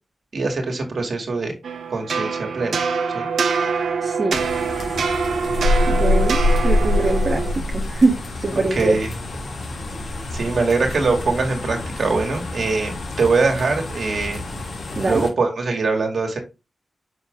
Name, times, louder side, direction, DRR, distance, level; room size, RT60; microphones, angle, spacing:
voice 1, 0.3-1.5 1.9-2.8 3.1-3.3 8.6-9.1 10.3-14.4 15.0-16.4, right 3 dB, 70° right, 2.3 m, -22 dB
sound 1, 1.6-7.5, right 5 dB, 90° right, 1.0 m, -24 dB
voice 2, 4.0-4.4 5.9-9.0 15.0-15.3, right 3 dB, 45° right, 1.5 m, -23 dB
sound 2, 4.3-15.3, left 2 dB, 80° left, 2.2 m, -25 dB
6.3 x 4.8 x 3.8 m
cardioid pair, 60°, 0 cm